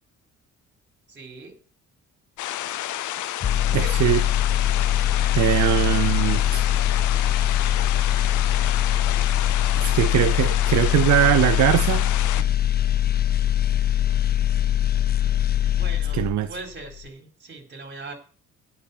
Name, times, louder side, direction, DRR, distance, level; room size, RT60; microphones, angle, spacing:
voice 1, 1.1-1.5 3.5-4.2 15.8-18.1, right 3 dB, 35° right, 4.0 m, -40 dB
sound 1, 2.4-12.4, left 13 dB, 75° left, 0.7 m, -31 dB
sound 2, 3.4-16.6 16.9-17.1, left 11 dB, 35° left, 0.5 m, -22 dB
voice 2, 3.7-4.2 5.3-6.6 9.8-12.1 16.1-16.5, right 13 dB, 70° right, 0.6 m, -21 dB
10.0 x 5.8 x 8.2 m
cardioid pair, 90°, 30 cm